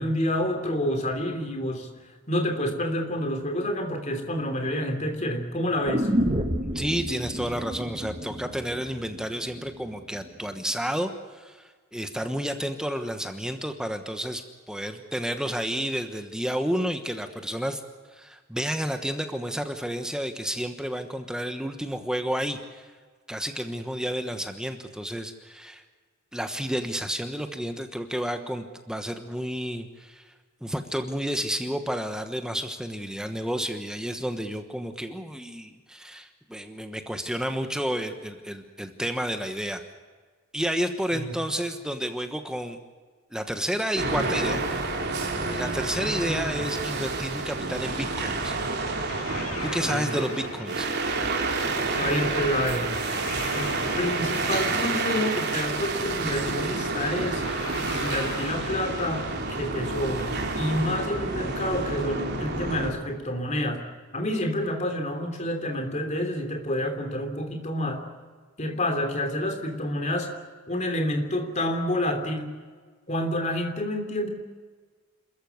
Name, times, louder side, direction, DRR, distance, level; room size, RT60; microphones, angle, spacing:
voice 1, 0.0-1.9 2.3-6.1 41.1-41.3 46.0-46.6 49.9-50.1 51.9-53.0 53.5-53.7 54.0-57.4 57.9-63.9 64.1-68.0 68.6-70.3 70.7-72.5 73.1-74.3, left 1 dB, 35° left, 5 dB, 3.2 m, -28 dB
sound 1, 5.8-9.9 10.2-10.3, equal, 30° right, 1.7 m, -30 dB
voice 2, 6.6-17.8 18.1-22.9 23.3-25.8 26.3-30.3 30.6-39.8 40.5-42.8 43.3-44.6 45.5-48.6 49.6-50.9, equal, 5° right, 6 dB, 1.1 m, -31 dB
sound 2, 44.0-62.9, right 3 dB, 50° right, 3.5 m, -29 dB
sound 3, 49.1-51.7 52.9-55.5 57.4-60.0, left 3 dB, 75° left, 3.0 m, -39 dB
27.5 x 14.5 x 9.4 m, 1.5 s
head